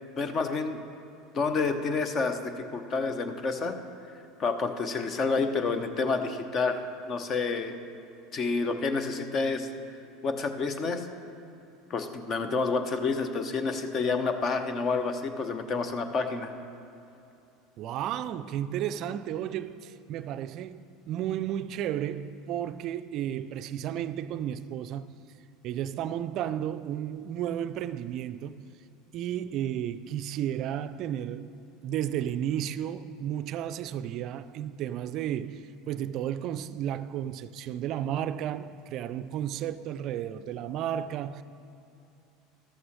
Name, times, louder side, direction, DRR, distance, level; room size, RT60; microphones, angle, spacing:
voice 1, 0.2-0.8 1.3-3.7 4.4-7.7 8.3-9.7 10.2-11.0 11.9-16.5, left 4 dB, 40° left, 0.9 m, -29 dB
voice 2, 17.8-25.2 25.6-28.7 29.1-31.6 31.8-41.4, right 10 dB, 50° right, 0.3 m, -33 dB
13.5 x 12.5 x 3.2 m
hypercardioid pair, 75°, 0 cm